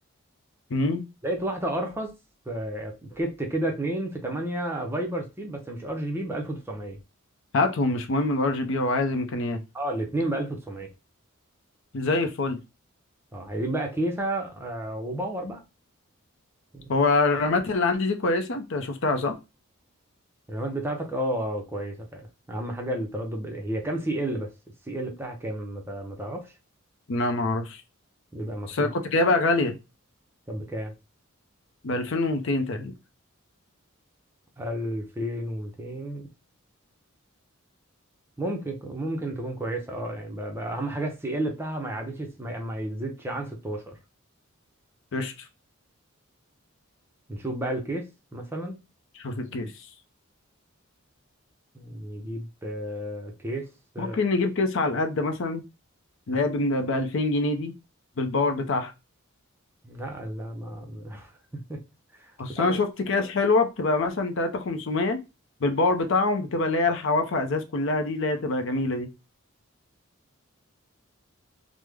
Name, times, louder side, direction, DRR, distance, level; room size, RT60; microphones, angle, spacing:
voice 1, 0.7-1.0 7.5-9.6 11.9-12.6 16.9-19.3 27.1-27.8 28.7-29.8 31.8-32.9 45.1-45.3 49.2-49.7 54.0-55.6 56.3-57.7 58.2-58.9 62.4-65.2 65.6-69.1, left 3 dB, 60° left, 0.5 m, -25 dB
voice 2, 1.2-2.2 2.5-7.0 9.7-10.9 13.3-15.6 16.7-16.9 20.5-24.5 24.9-26.5 28.3-28.9 30.5-30.9 34.6-36.3 38.4-44.0 47.3-48.8 51.7-54.2 59.8-61.8 62.1-62.3 62.6-62.8 65.8-65.9, right 1 dB, 10° right, 0.5 m, -32 dB
3.1 x 2.0 x 3.4 m
head